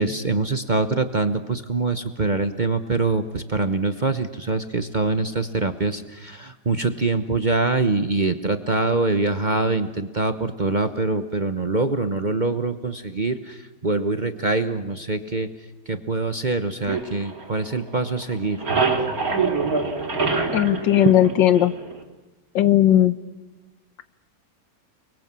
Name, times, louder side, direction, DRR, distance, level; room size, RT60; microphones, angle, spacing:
voice 1, 0.0-13.6 13.8-15.5 15.9-18.6, right 3 dB, 35° right, 8 dB, 0.9 m, -24 dB
sound 1, 16.9-18.0 18.3-22.0, right 4 dB, 50° right, 3.4 m, -25 dB
voice 2, 20.5-21.7 22.5-23.1, left 12 dB, 85° left, 13 dB, 1.7 m, -17 dB
30.0 x 22.0 x 7.5 m, 1.2 s
omnidirectional pair, 1.9 m